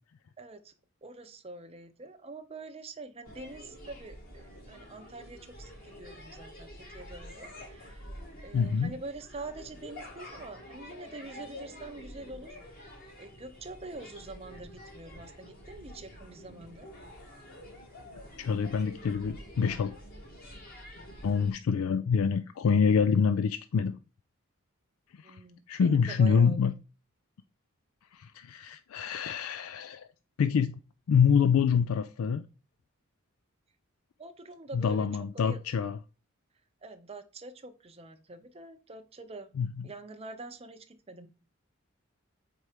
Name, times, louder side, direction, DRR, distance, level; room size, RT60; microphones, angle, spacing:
voice 1, 0.4-0.7 1.0-8.1 8.4-12.9 13.2-16.9 25.2-26.7 34.2-35.1 35.3-35.6 36.8-39.5 39.8-41.3, right 2 dB, 30° right, 0.6 m, -45 dB
sound 1, 3.2-21.5, equal, 45° left, 2.2 m, -48 dB
voice 2, 8.5-8.9 18.4-19.9 21.2-24.0 25.1-25.4 25.7-26.7 28.1-30.1 30.4-30.8 31.1-32.4 34.7-36.0 39.6-39.7, left 6 dB, 85° left, 0.4 m, -26 dB
4.6 x 4.3 x 4.9 m
head